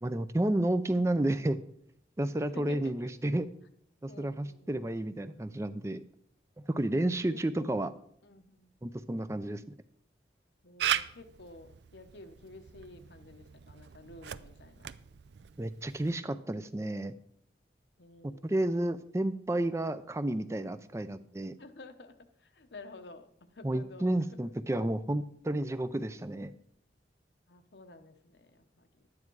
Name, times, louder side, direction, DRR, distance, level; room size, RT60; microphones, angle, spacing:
voice 1, 0.0-1.6 2.2-3.5 4.0-6.0 6.6-7.9 8.8-9.6 15.6-17.1 18.4-21.5 23.6-26.5, right 1 dB, 15° right, 12 dB, 0.4 m, -31 dB
voice 2, 2.4-2.9 4.1-4.9 7.3-7.7 8.2-8.7 10.6-14.9 18.0-18.6 21.6-24.2 26.1-26.2 27.5-29.1, left 2 dB, 80° left, 8 dB, 1.0 m, -51 dB
Camera, 10.8-16.2, right 9 dB, 80° right, 0.4 m, -38 dB
12.0 x 9.7 x 4.6 m, 0.69 s
head